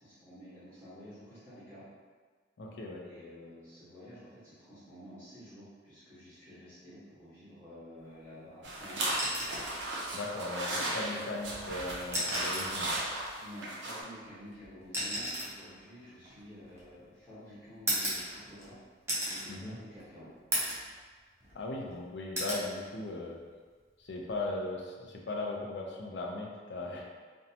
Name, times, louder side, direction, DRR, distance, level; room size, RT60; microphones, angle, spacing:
voice 1, 0.0-1.8 3.0-9.2 10.9-11.3 13.3-18.8 19.2-20.3, equal, 15° left, -14 dB, 0.9 m, -50 dB
voice 2, 2.6-3.0 10.1-13.0 19.5-19.8 21.5-23.4 24.0-27.0, left 2 dB, 70° left, 0 dB, 0.4 m, -38 dB
sound 1, 8.6-14.0, right 1 dB, 85° right, 0.5 m, -36 dB
sound 2, 9.1-9.8 11.2-11.4 12.0-12.8 14.0-17.0 17.9-18.7 19.1-19.5 19.9-20.0 20.5-20.9 21.3-21.9 22.4-22.7 24.1-24.4, right 1 dB, 15° right, 0.5 m, -35 dB
2.6 x 2.1 x 2.7 m, 1.5 s
head